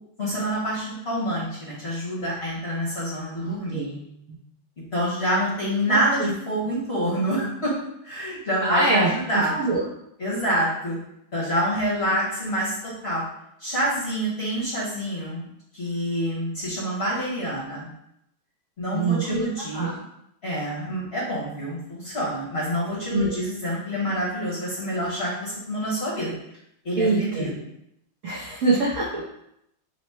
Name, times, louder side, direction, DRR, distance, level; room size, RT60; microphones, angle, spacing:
voice 1, 0.2-3.8 4.9-7.7 8.0-9.5 10.2-11.0 11.3-13.2 13.6-15.5 15.7-17.9 18.8-19.9 20.4-26.3 26.8-27.5, equal, 40° left, -7 dB, 1.1 m, -27 dB
voice 2, 3.4-4.1 5.9-6.3 8.6-9.8 18.9-19.5 19.7-20.0 23.1-23.3 27.0-27.5 28.2-29.2, right 2 dB, 65° right, -6 dB, 0.7 m, -24 dB
4.6 x 2.1 x 4.2 m, 0.78 s
omnidirectional pair, 2.3 m